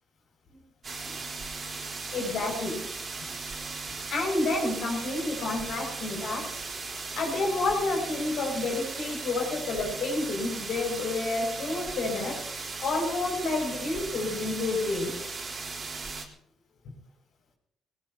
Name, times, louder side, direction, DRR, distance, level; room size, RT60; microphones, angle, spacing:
sound 1, 0.8-16.2, right 4 dB, 40° right, 3.7 m, -37 dB
voice 1, 2.1-2.7 4.1-6.5 7.1-12.4 12.8-15.1, left 2 dB, 75° left, 1 dB, 6.8 m, -29 dB
21.0 x 19.0 x 3.0 m, 0.77 s
cardioid pair, 90°, 0 cm